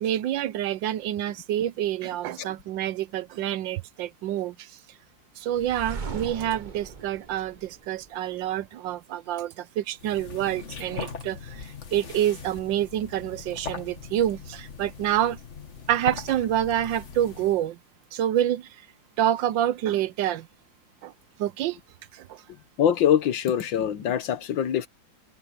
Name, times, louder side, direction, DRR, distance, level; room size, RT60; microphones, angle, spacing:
voice 1, 0.0-4.7 5.4-15.4 15.9-17.8 18.1-18.7 19.2-20.5 21.0-21.1 21.4-21.8 22.1-22.4, right 11 dB, 75° right, 1.3 m, -27 dB
sound 1, 5.5-8.5, right 5 dB, 40° right, 0.6 m, -38 dB
sound 2, 10.0-17.7, left 6 dB, 40° left, 1.6 m, -40 dB
voice 2, 22.8-24.9, left 9 dB, 75° left, 1.7 m, -23 dB
omnidirectional pair, 2.1 m